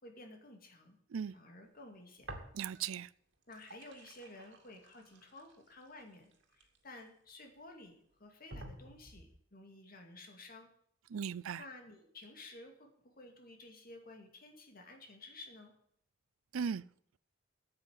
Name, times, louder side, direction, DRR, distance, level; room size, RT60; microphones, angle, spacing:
voice 1, 0.0-1.0 1.3-2.3 3.5-10.7 11.6-15.7, left 2 dB, 45° left, 2.5 m, -53 dB
sound 1, 2.2-3.0 3.3-7.3 7.9-8.0 8.5-9.4, right 2 dB, 60° right, 2.3 m, -52 dB
voice 2, 2.5-3.1 11.1-11.6 16.5-16.8, right 7 dB, 85° right, 0.4 m, -37 dB
8.8 x 8.1 x 8.8 m
head